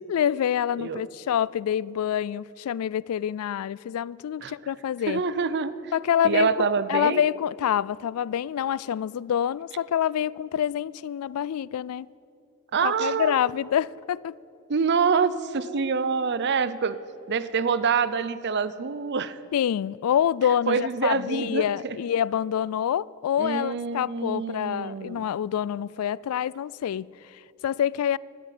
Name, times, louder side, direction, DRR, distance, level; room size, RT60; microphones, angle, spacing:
voice 1, 0.1-5.2 5.9-6.5 6.9-12.1 12.8-14.3 19.5-28.2, left 9 dB, 90° left, 0.3 m, -26 dB
voice 2, 5.1-5.9 6.2-7.2 12.7-13.4 14.7-17.0 17.3-19.4 20.7-22.0 23.4-25.2, right 5 dB, 55° right, 0.6 m, -26 dB
12.5 x 10.0 x 9.0 m
head